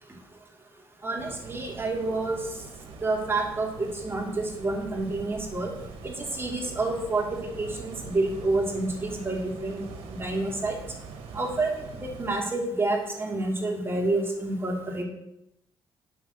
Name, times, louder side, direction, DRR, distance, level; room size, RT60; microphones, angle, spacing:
voice 1, 1.0-2.4 3.0-5.7 6.0-9.8 10.2-10.7 11.3-11.7 12.2-15.0, right 2 dB, 25° right, 0 dB, 2.9 m, -28 dB
sound 1, 1.2-12.4, right 5 dB, 90° right, 1.5 m, -43 dB
7.7 x 6.3 x 7.9 m, 0.83 s
cardioid pair, 70°, 9 cm